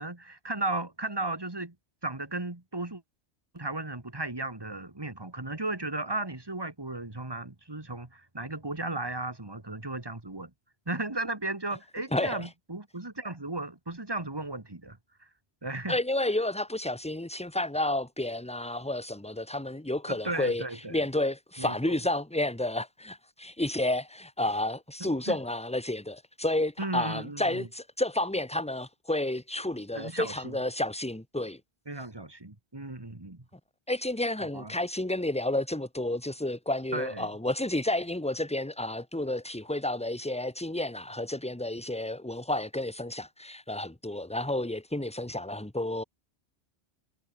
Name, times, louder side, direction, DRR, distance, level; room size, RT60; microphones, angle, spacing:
voice 1, 0.0-1.7 2.0-3.0 3.5-10.5 10.9-15.0 15.6-16.0 20.1-21.0 21.6-21.9 25.0-25.4 26.8-27.7 29.9-30.6 31.9-33.4 34.4-34.7 36.9-37.3, right 2 dB, 20° right, 2.1 m, -35 dB
voice 2, 12.1-12.5 15.9-20.6 20.9-31.6 33.9-46.0, left 1 dB, 5° left, 1.4 m, -31 dB
omnidirectional pair, 1.1 m